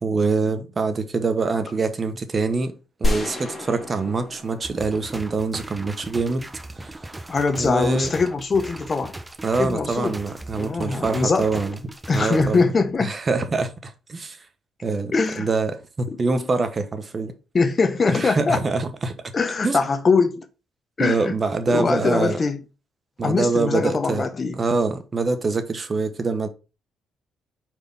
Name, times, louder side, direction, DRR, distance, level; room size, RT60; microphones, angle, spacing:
voice 1, 0.0-2.7 3.0-6.5 6.7-8.1 9.4-11.8 12.1-12.7 13.0-14.4 14.8-17.3 18.1-19.3 19.6-19.8 21.0-22.4 23.2-24.3 24.6-26.5, right 3 dB, 35° right, 1.2 m, -25 dB
sound 1, 3.0-5.9, left 1 dB, 20° left, 2.8 m, -29 dB
sound 2, 4.6-12.6, right 1 dB, 15° right, 1.0 m, -38 dB
voice 2, 7.3-9.1 9.6-10.2 10.6-11.6 12.1-13.1 15.1-15.5 16.1-16.4 17.5-18.6 19.3-20.5 21.0-21.3 21.7-22.6 23.2-24.6, left 4 dB, 35° left, 1.1 m, -22 dB
4.8 x 4.7 x 5.5 m
cardioid pair, 90°, 0 cm